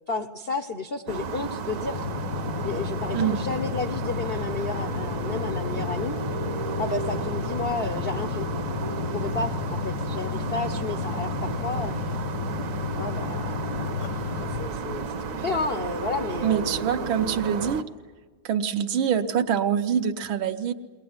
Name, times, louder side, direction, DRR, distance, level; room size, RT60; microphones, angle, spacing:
voice 1, 0.1-2.1 2.6-6.2 6.8-8.5 9.1-12.0 13.0-16.9, left 3 dB, 60° left, 7 dB, 0.6 m, -32 dB
sound 1, 1.1-17.8, right 4 dB, 50° right, 1.2 m, -33 dB
sound 2, 1.9-14.7, left 9 dB, 80° left, 1.7 m, -33 dB
voice 2, 16.4-17.8 18.5-20.7, right 8 dB, 75° right, 8 dB, 1.7 m, -25 dB
22.5 x 19.0 x 9.5 m, 1.4 s
omnidirectional pair, 2.2 m